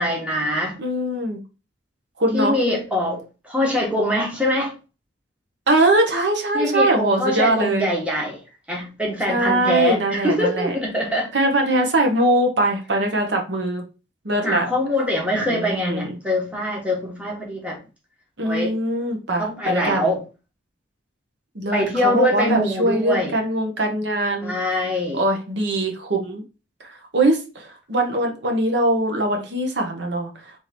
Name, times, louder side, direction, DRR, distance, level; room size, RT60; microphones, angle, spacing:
voice 1, 0.0-0.8 2.3-4.7 6.5-8.4 8.7-11.3 14.4-17.8 18.4-18.7 19.4-20.2 21.7-23.3 24.4-25.2, left 1 dB, 5° right, 1.3 m, -23 dB
voice 2, 0.8-1.4 2.2-2.6 5.7-7.9 9.3-10.8 11.3-13.8 14.2-14.6 15.5-16.1 18.4-20.1 21.5-24.5 25.1-26.4 26.8-30.5, right 1 dB, 65° right, 1.0 m, -22 dB
3.7 x 3.0 x 4.2 m
head